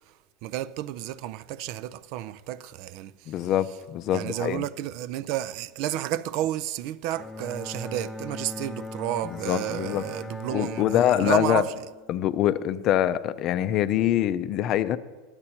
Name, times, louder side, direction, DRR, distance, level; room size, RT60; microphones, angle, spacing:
voice 1, 0.4-3.3 4.1-11.9, right 13 dB, 60° right, 0.4 m, -31 dB
voice 2, 3.3-4.6 9.3-10.0 10.5-11.6 12.1-15.0, left 11 dB, 45° left, 0.5 m, -24 dB
Bowed string instrument, 7.1-12.6, left 2 dB, 5° left, 1.2 m, -39 dB
12.5 x 8.7 x 4.3 m
hypercardioid pair, 95°, 0 cm